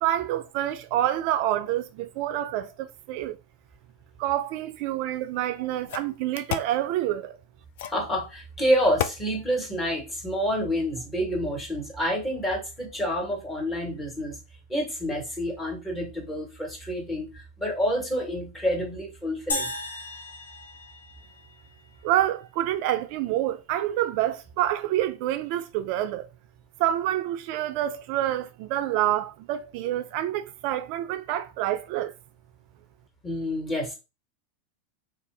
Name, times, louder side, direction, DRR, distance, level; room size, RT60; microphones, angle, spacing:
voice 1, 0.0-3.4 4.2-7.4 22.0-26.3 26.8-32.1, right 13 dB, 55° right, 0.3 m, -27 dB
sound 1, 5.1-5.2 5.9-6.8 7.8-8.1 9.0-9.2, left 11 dB, 65° left, 0.3 m, -31 dB
voice 2, 7.9-14.4 14.7-19.7 33.2-33.9, equal, 15° left, 1.4 m, -28 dB
sound 2, 19.5-21.9, left 1 dB, 85° left, 0.8 m, -35 dB
2.5 x 2.5 x 3.4 m
hypercardioid pair, 95°, 0 cm